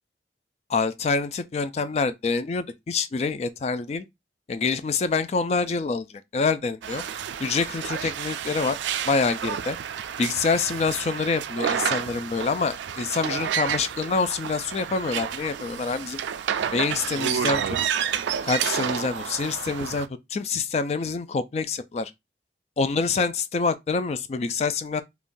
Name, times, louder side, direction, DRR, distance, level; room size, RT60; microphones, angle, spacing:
voice 1, 0.7-4.0 4.5-6.1 6.3-7.0 7.4-8.8 9.1-9.8 10.2-16.2 16.7-17.8 18.4-22.1 22.8-25.0, left 4 dB, 35° left, 0.3 m, -26 dB
sound 1, 6.8-20.1, right 8 dB, 85° right, 0.3 m, -30 dB
3.6 x 2.3 x 2.5 m
head